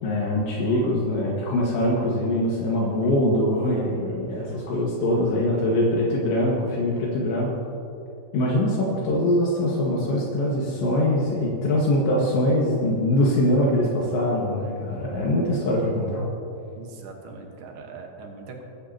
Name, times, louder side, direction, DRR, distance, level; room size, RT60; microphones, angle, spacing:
voice 1, 0.0-7.5 8.3-16.3, left 1 dB, 75° left, -4 dB, 3.7 m, -23 dB
voice 2, 16.8-18.6, right 4 dB, 65° right, 1 dB, 2.9 m, -41 dB
22.5 x 10.5 x 2.8 m, 2.7 s
omnidirectional pair, 5.5 m